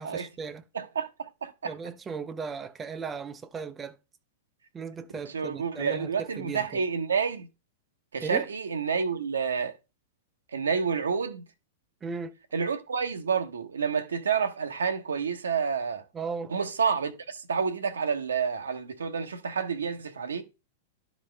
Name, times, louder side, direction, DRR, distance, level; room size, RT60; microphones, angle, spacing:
voice 1, 0.0-0.6 1.6-4.0 4.7-6.8 8.2-8.5 12.0-12.3 16.1-16.5, right 5 dB, 20° right, 0.5 m, -36 dB
voice 2, 0.7-1.7 5.3-7.5 8.1-9.7 10.5-11.4 12.5-16.0 16.5-20.4, right 6 dB, 75° right, 0.8 m, -29 dB
12.0 x 4.1 x 3.2 m
figure-of-eight pair, 100°, 0 cm